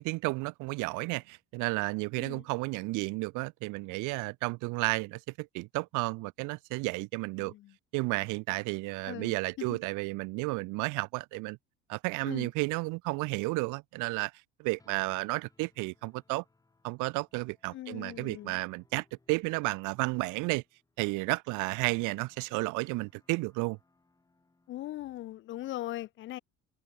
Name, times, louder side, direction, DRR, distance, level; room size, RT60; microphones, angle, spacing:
voice 1, 0.0-7.5 7.9-11.6 11.9-14.3 14.6-16.4 16.8-20.6 21.0-23.8, right 25 dB, 75° right, 0.5 m, -32 dB
voice 2, 7.4-7.7 9.1-9.8 12.2-12.5 17.7-18.6 24.7-26.4, left 14 dB, 40° left, 0.5 m, -40 dB
sound 1, 14.8-24.9, left 3 dB, 10° left, 5.0 m, -69 dB
cardioid pair, 160°, 31 cm